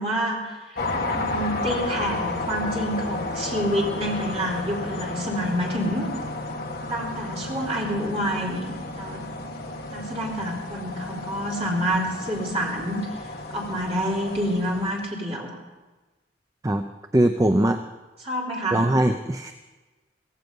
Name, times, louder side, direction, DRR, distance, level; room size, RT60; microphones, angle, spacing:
voice 1, 0.0-6.1 6.9-9.2 9.9-15.5 18.2-18.8, equal, 30° right, -3 dB, 3.4 m, -28 dB
sound 1, 0.8-15.0, left 2 dB, 50° left, 1.6 m, -32 dB
voice 2, 17.1-17.8 18.7-19.5, right 1 dB, 15° right, 7 dB, 0.5 m, -21 dB
16.0 x 16.0 x 5.3 m, 1.2 s
head